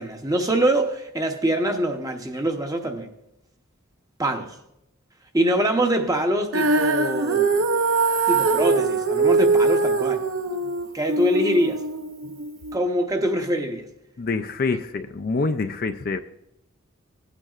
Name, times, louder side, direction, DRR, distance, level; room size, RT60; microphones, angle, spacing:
voice 1, 0.0-3.1 4.2-4.6 5.3-7.5 8.3-10.2 10.9-11.8 12.7-13.9, right 1 dB, 15° right, 0.8 m, -24 dB
Female singing, 6.5-12.7, right 3 dB, 70° right, 0.6 m, -22 dB
voice 2, 14.2-16.2, left 3 dB, 40° left, 0.4 m, -26 dB
17.0 x 9.1 x 2.4 m
head